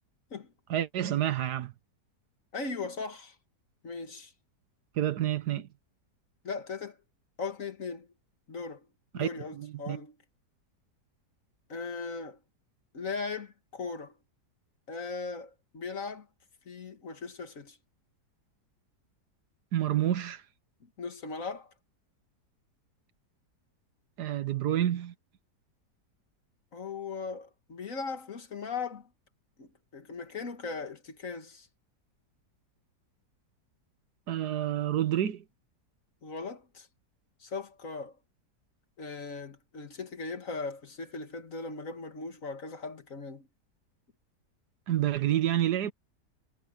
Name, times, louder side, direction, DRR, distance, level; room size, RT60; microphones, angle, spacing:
voice 1, 0.7-1.7 5.0-5.7 9.1-10.0 19.7-20.4 24.2-25.1 34.3-35.4 44.9-45.9, right 12 dB, 70° right, 1.5 m, -29 dB
voice 2, 2.5-3.4 3.8-4.3 6.4-7.0 7.4-8.1 8.5-8.9 9.1-10.2 11.7-12.4 12.9-14.1 14.9-16.3 16.7-17.8 21.0-21.7 26.7-29.1 29.6-31.7 36.2-36.9 37.4-38.2 39.0-43.5, left 4 dB, 50° left, 2.0 m, -38 dB
omnidirectional pair, 1.8 m